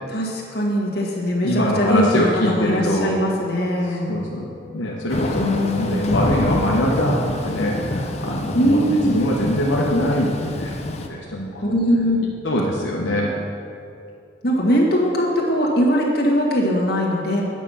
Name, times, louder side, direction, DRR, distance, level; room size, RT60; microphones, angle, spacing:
voice 1, 0.1-4.2 5.3-6.1 8.5-9.2 11.6-12.2 14.4-17.4, equal, 55° left, -3 dB, 1.7 m, -21 dB
voice 2, 1.4-3.1 4.1-5.5 5.8-8.8 9.0-11.6 12.4-13.3, left 1 dB, 80° left, -3 dB, 0.9 m, -23 dB
sound 1, 3.9-6.7, right 5 dB, 5° left, 1.2 m, -38 dB
Thunder / Rain, 5.1-11.1, left 1 dB, 35° left, 0.6 m, -27 dB
9.0 x 6.2 x 5.6 m, 2.6 s
head